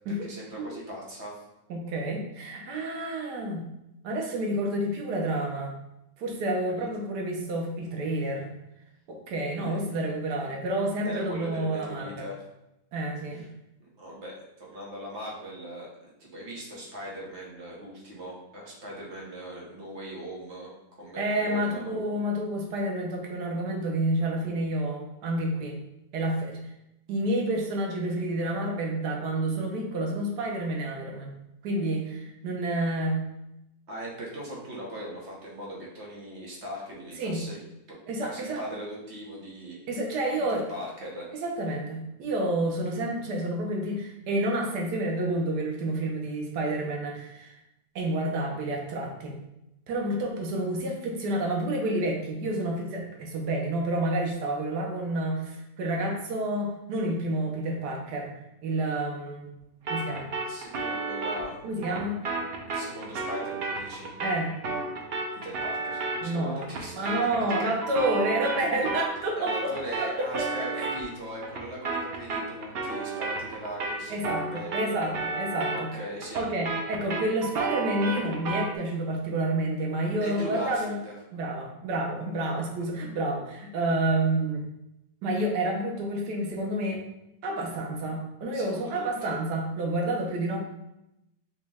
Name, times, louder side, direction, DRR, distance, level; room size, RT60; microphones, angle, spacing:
voice 1, 0.2-1.4 6.8-6.9 9.6-9.8 11.0-12.4 13.3-13.4 13.8-21.9 33.9-37.6 37.9-39.8 40.3-41.3 60.5-61.6 61.8-62.1 62.7-64.1 65.4-67.2 67.6-67.7 69.4-75.1 75.7-76.4 80.2-81.2 88.5-89.4, right 1 dB, 50° right, -3 dB, 1.1 m, -40 dB
voice 2, 1.7-3.7 4.0-5.7 6.2-8.5 9.1-12.3 12.9-13.5 21.2-25.8 26.1-26.6 27.1-31.4 31.6-33.2 37.2-37.4 38.1-38.6 39.9-40.6 41.4-47.6 47.9-49.4 49.9-58.3 58.6-59.5 59.9-60.3 61.6-62.2 64.2-64.5 66.2-66.6 66.9-69.5 70.0-70.5 70.7-70.9 74.1-75.9 76.3-81.0 81.3-84.6 85.2-87.0 87.4-90.6, right 1 dB, 80° right, 0 dB, 1.4 m, -29 dB
sound 1, 59.9-69.2 69.5-78.8, right 3 dB, 65° right, 0.5 m, -33 dB
5.1 x 2.2 x 3.4 m, 0.87 s
omnidirectional pair, 1.7 m